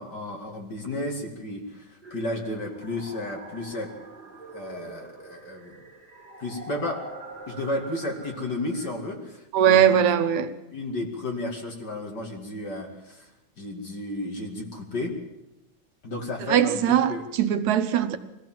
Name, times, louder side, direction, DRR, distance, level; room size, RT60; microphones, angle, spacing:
voice 1, 0.0-3.9 4.5-5.8 6.4-7.0 7.5-10.1 10.7-13.3 13.6-15.2 16.0-17.2, left 1 dB, 35° left, 2.7 m, -33 dB
sound 1, 2.0-8.9, right 2 dB, 15° right, 4.0 m, -44 dB
voice 2, 9.5-10.5 16.5-18.2, right 9 dB, 80° right, 2.3 m, -20 dB
22.0 x 15.5 x 7.6 m
omnidirectional pair, 3.3 m